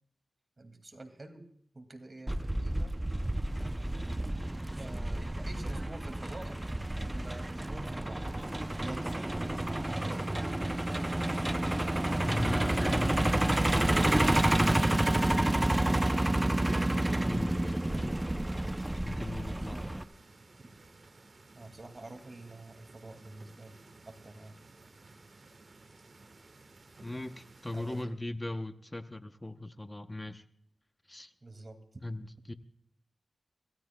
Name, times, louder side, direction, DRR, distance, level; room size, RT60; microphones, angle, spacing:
voice 1, 0.6-1.5 1.7-2.9 4.8-6.6 7.1-8.3 8.8-9.8 19.5-19.9 21.6-23.7 24.0-24.6 27.7-28.2 31.4-31.8, right 2 dB, 35° right, 5 dB, 2.2 m, -47 dB
Truck, 2.3-20.0, right 1 dB, 15° right, 0.5 m, -29 dB
voice 2, 12.2-18.1 19.0-20.1 27.0-30.4 31.1-31.3 32.0-32.5, left 1 dB, 20° left, 9 dB, 0.7 m, -39 dB
sound 1, 17.1-28.0, right 3 dB, 55° right, 1.2 m, -56 dB
26.0 x 16.5 x 2.2 m, 0.63 s
wide cardioid pair, 90°, 0 cm